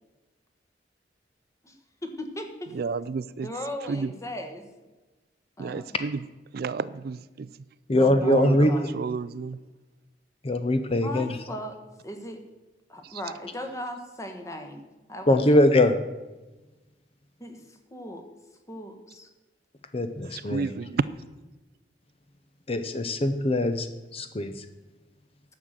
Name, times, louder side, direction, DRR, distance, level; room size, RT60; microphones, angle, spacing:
voice 1, 2.0-2.7 3.4-4.6 5.6-5.8 7.9-8.9 11.0-11.8 12.0-12.4 12.9-14.8 15.1-15.6 17.4-18.2 18.7-19.3, left 1 dB, 20° left, 5 dB, 1.3 m, -37 dB
voice 2, 2.7-3.5 3.9-4.1 5.6-6.2 6.5-7.5 8.2-9.6 13.0-13.2 20.2-21.0, right 4 dB, 60° right, 17 dB, 0.4 m, -31 dB
voice 3, 7.9-8.7 10.4-11.4 15.3-15.9 19.9-20.7 22.7-23.9 24.1-24.7, left 1 dB, 35° left, 9 dB, 0.7 m, -22 dB
10.5 x 6.5 x 7.4 m, 1.1 s
head